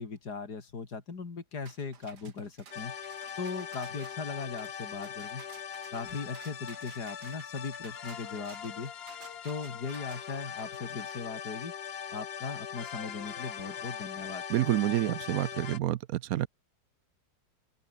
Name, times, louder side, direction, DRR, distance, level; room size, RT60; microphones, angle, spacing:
voice 1, 0.0-2.9 3.4-5.4 5.9-8.9 9.4-11.7 12.1-14.4, left 4 dB, 75° left, 3.4 m, -38 dB
sound 1, 1.7-12.0, right 7 dB, 90° right, 2.3 m, -55 dB
sound 2, 2.7-15.8, left 8 dB, 45° left, 0.9 m, -41 dB
voice 2, 14.5-16.5, right 13 dB, 70° right, 1.0 m, -28 dB
open air
omnidirectional pair, 1.7 m